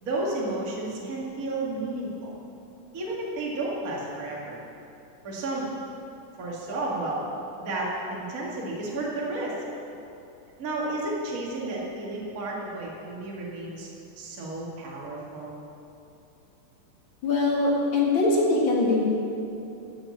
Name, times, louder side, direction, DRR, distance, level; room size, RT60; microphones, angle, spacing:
voice 1, 0.0-2.3 2.9-4.6 5.2-5.7 6.4-7.2 7.6-9.6 10.6-13.9 14.2-15.5, right 2 dB, 30° right, -4 dB, 1.9 m, -32 dB
voice 2, 17.2-19.0, left 2 dB, 40° left, -3 dB, 2.1 m, -22 dB
13.5 x 7.6 x 7.3 m, 2.8 s
omnidirectional pair, 4.0 m